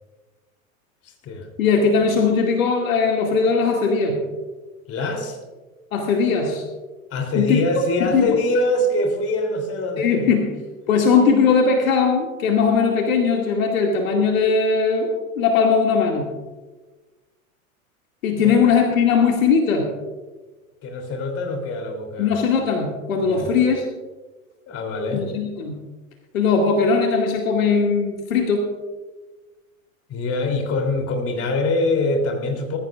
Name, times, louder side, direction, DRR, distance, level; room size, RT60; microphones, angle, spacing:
voice 1, 1.0-1.5 4.9-5.4 7.1-10.3 18.4-18.6 20.8-22.4 23.2-23.5 24.7-25.3 30.1-32.8, left 2 dB, 35° left, 4 dB, 3.3 m, -24 dB
voice 2, 1.6-4.2 5.9-6.6 7.4-7.6 8.0-8.3 10.0-10.5 10.9-16.3 18.2-19.9 22.2-23.8 25.1-25.7 26.3-28.7, left 5 dB, 70° left, 1 dB, 2.4 m, -19 dB
20.5 x 15.0 x 2.5 m, 1.2 s
hypercardioid pair, 95°, 42 cm